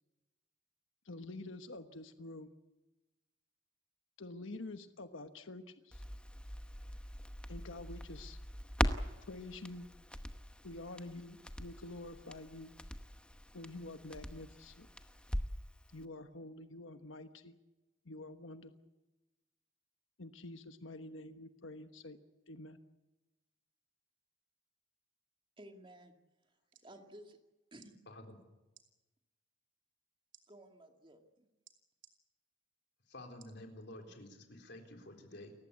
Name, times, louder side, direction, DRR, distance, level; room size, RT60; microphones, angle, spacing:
voice 1, 1.0-2.5 4.2-6.0 7.5-8.4 9.3-9.8 10.6-12.7 13.5-14.9 15.9-17.5 18.0-18.7 20.2-22.2 22.5-22.8, left 2 dB, 80° left, 1.2 m, -47 dB
Crackle, 5.9-15.7 16.0-16.1, equal, 5° left, 0.9 m, -41 dB
voice 2, 25.6-26.1 26.8-27.4 27.7-28.0 30.5-31.5, right 1 dB, 25° right, 2.2 m, -55 dB
sound 1, 26.5-26.9 27.7-27.9 28.7-28.9 30.3-30.5 31.7-32.2 33.4-33.6 34.2-34.3, right 11 dB, 70° right, 3.1 m, -61 dB
voice 3, 28.1-28.4 33.1-35.5, left 1 dB, 60° left, 3.9 m, -50 dB
29.5 x 15.5 x 8.4 m
head